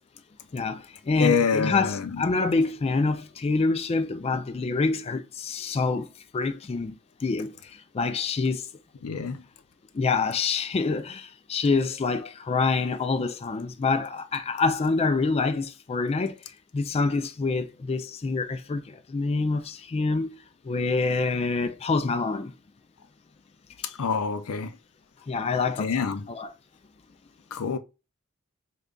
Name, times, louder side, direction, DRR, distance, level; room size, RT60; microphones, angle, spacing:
voice 1, 0.5-8.7 9.9-16.4 16.7-20.4 20.6-22.5 25.3-26.5, left 4 dB, 30° left, 0.3 m, -26 dB
voice 2, 1.2-2.2 9.0-9.4 24.0-24.7 25.8-26.3 27.5-27.8, left 5 dB, 80° left, 0.5 m, -26 dB
5.0 x 2.2 x 2.3 m
head